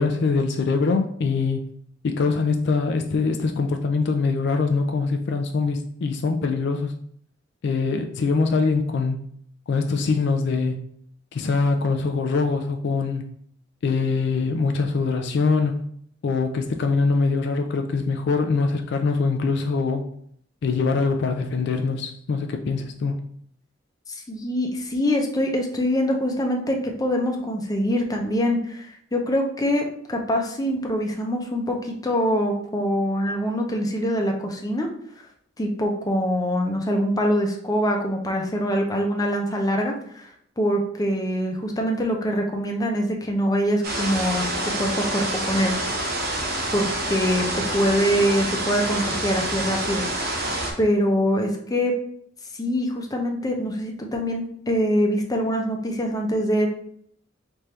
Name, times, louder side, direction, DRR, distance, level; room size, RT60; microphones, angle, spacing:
voice 1, 0.0-1.7 2.0-6.9 7.6-9.2 9.7-10.8 11.3-13.2 13.8-15.8 16.2-20.1 20.6-23.2, left 4 dB, 60° left, 0.4 m, -23 dB
voice 2, 24.1-34.9 35.6-40.3 40.6-44.4 44.8-45.7 46.7-52.0 52.6-56.7, equal, 20° left, 0.6 m, -24 dB
sound 1, 43.8-50.7, right 1 dB, 50° right, 0.9 m, -27 dB
3.4 x 2.6 x 4.3 m
head